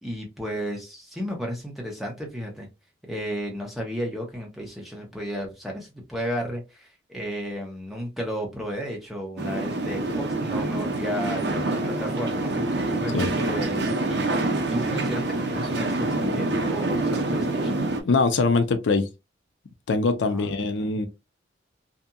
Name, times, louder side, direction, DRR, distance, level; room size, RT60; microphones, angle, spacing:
voice 1, 0.0-2.7 3.0-17.8 20.3-21.0, equal, ahead, 0.8 m, -33 dB
sound 1, 9.4-18.0, right 2 dB, 60° right, 0.6 m, -26 dB
voice 2, 18.1-19.1 19.9-21.1, left 3 dB, 75° left, 0.5 m, -22 dB
2.7 x 2.5 x 2.3 m
head